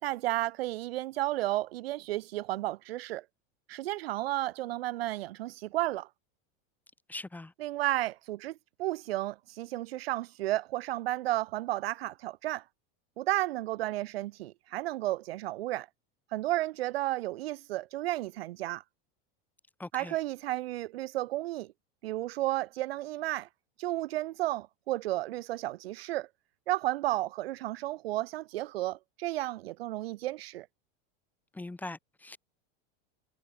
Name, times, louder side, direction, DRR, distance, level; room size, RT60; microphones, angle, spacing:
voice 1, 0.0-3.2 3.7-6.1 7.6-12.6 13.2-15.9 16.3-18.8 19.9-21.7 22.0-23.5 23.8-26.3 26.7-30.7, right 16 dB, 90° right, 4.6 m, -33 dB
voice 2, 7.1-7.5 19.8-20.2 31.5-32.4, left 2 dB, 5° left, 4.5 m, -41 dB
supercardioid pair, 165°, 29 cm